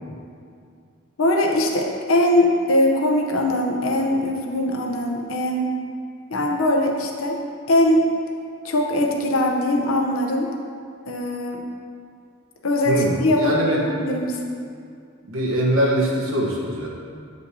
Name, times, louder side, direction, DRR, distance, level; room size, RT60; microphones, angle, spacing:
voice 1, 1.2-5.8 6.3-7.4 7.7-8.1 8.6-10.5 11.1-11.7 12.6-14.4, left 1 dB, 80° left, 1 dB, 0.7 m, -21 dB
voice 2, 12.9-13.8 15.3-16.9, right 1 dB, 75° right, -2 dB, 1.1 m, -22 dB
8.1 x 5.4 x 2.7 m, 2.3 s
head